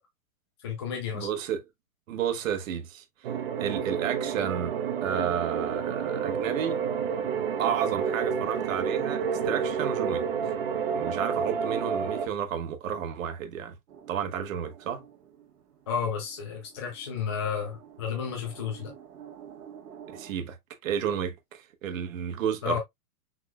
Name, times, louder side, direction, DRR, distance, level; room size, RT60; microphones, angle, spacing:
voice 1, 0.6-1.3 15.9-18.9 22.6-22.8, left 6 dB, 20° left, 0.4 m, -32 dB
voice 2, 1.1-1.6 2.1-3.0 3.6-4.7 5.0-6.8 7.6-10.3 10.9-13.7 14.1-15.0 20.1-20.6 20.8-22.8, right 8 dB, 60° right, 1.4 m, -31 dB
sound 1, 3.2-12.3, right 7 dB, 40° right, 0.8 m, -29 dB
sound 2, 13.9-20.3, right 9 dB, 90° right, 1.9 m, -50 dB
6.0 x 3.7 x 2.3 m
hypercardioid pair, 165°, 46 cm